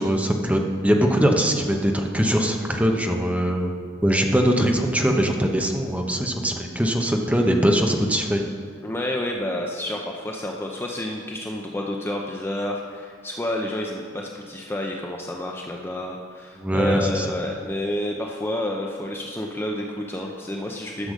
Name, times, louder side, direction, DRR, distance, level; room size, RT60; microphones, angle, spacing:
voice 1, 0.0-3.7 4.0-8.5 16.6-17.3 21.0-21.1, equal, 10° right, 2 dB, 0.9 m, -21 dB
voice 2, 8.8-21.1, left 1 dB, 10° left, 0 dB, 0.6 m, -29 dB
12.0 x 6.8 x 6.4 m, 2.2 s
head